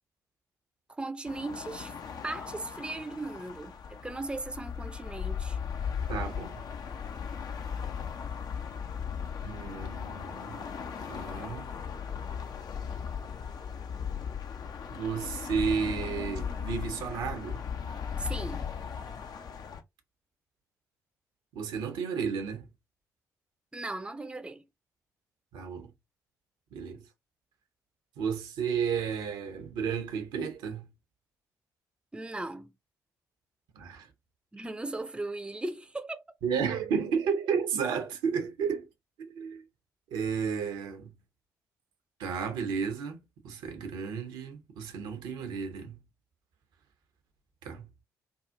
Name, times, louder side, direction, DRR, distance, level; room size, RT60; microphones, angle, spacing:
voice 1, 0.9-1.9 2.2-5.6 18.2-18.7 23.7-24.6 32.1-32.7 34.5-36.2, right 2 dB, 10° right, 0.6 m, -37 dB
sound 1, 1.3-19.8, left 7 dB, 50° left, 0.7 m, -37 dB
voice 2, 6.1-6.6 9.4-10.6 11.1-11.7 14.9-17.6 21.5-22.7 25.5-25.9 26.7-27.0 28.2-30.9 33.7-34.1 36.4-38.9 39.3-39.6 40.1-41.1 42.2-46.0 47.6-47.9, right 6 dB, 65° right, 0.9 m, -32 dB
4.6 x 2.4 x 2.5 m
figure-of-eight pair, 40°, 9 cm